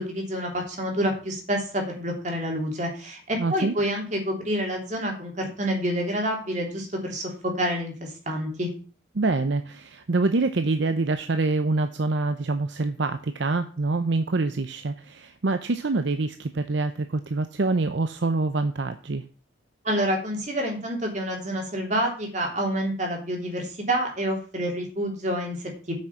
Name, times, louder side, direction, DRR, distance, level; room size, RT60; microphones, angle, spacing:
voice 1, 0.0-8.7 19.8-25.9, equal, 40° right, 1 dB, 3.3 m, -28 dB
voice 2, 3.4-3.7 9.1-19.2, right 3 dB, 65° right, 9 dB, 0.6 m, -25 dB
8.7 x 6.3 x 7.0 m, 0.39 s
head